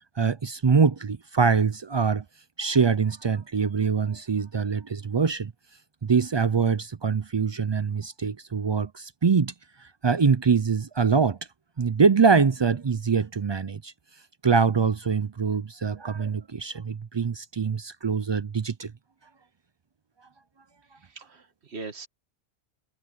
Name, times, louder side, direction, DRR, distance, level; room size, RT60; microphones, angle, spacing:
voice 1, 0.2-2.2 2.6-5.5 6.0-9.5 10.0-11.4 11.8-13.9 14.4-18.9, right 5 dB, 45° right, 0.3 m, -24 dB
voice 2, 21.0-22.1, right 4 dB, 70° right, 2.1 m, -40 dB
omnidirectional pair, 1.1 m